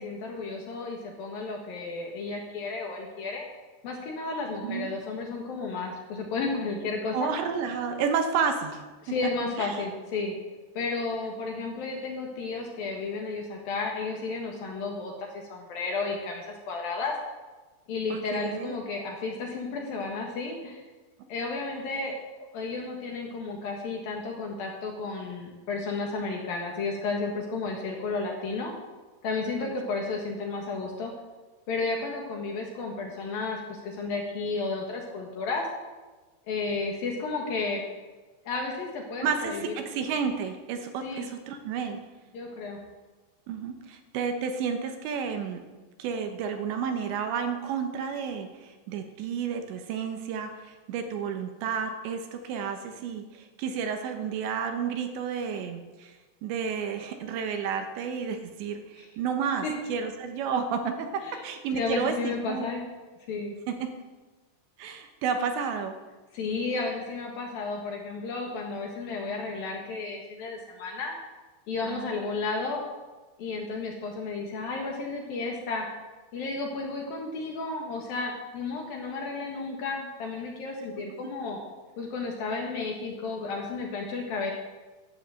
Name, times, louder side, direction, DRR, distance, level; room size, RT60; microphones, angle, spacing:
voice 1, 0.0-3.4 3.8-7.3 9.0-10.3 10.7-17.1 17.9-20.8 21.3-22.2 22.5-28.7 29.2-31.1 31.7-35.7 36.5-37.8 38.5-39.7 41.0-41.3 42.3-42.8 59.0-59.1 59.6-59.7 61.2-61.4 61.7-62.8 63.3-63.5 66.3-71.1 71.7-72.8 73.4-75.9 76.3-81.6 82.0-84.5, left 3 dB, 60° left, 0 dB, 2.8 m, -32 dB
voice 2, 7.1-8.8 9.2-9.3 9.6-9.8 18.1-18.8 29.6-29.7 39.2-42.0 43.5-45.6 46.0-62.7 63.7-63.9 64.8-65.9 71.8-72.2, right 6 dB, 75° right, 6 dB, 3.1 m, -31 dB
12.5 x 9.1 x 7.6 m, 1.2 s
omnidirectional pair, 5.6 m